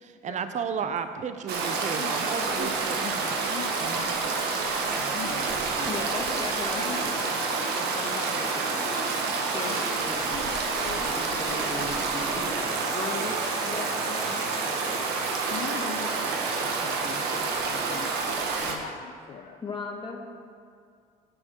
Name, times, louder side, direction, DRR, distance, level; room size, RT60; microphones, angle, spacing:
voice 1, 0.0-3.5 3.8-4.3 14.5-15.1 15.4-16.1 16.8-16.9 17.7-18.8, right 7 dB, 45° right, 10 dB, 0.8 m, -36 dB
Stream, 1.5-18.8, right 4 dB, 75° right, 1.5 m, -28 dB
voice 2, 2.0-2.7 3.0-3.7 4.0-4.1 4.5-5.5 5.8-5.9 6.9-7.0 7.5-7.6 9.6-9.8 10.3-10.4 10.7-11.0 15.5-16.3 16.6-17.2 17.7-18.1 18.6-19.0 19.3-19.5, left 7 dB, 50° left, 2 dB, 0.8 m, -40 dB
voice 3, 5.8-9.1 9.4-10.3 10.8-13.3 13.6-14.4 19.6-20.2, left 3 dB, 30° left, -1 dB, 2.0 m, -37 dB
9.6 x 7.9 x 6.3 m, 2.2 s
supercardioid pair, 85°, 17 cm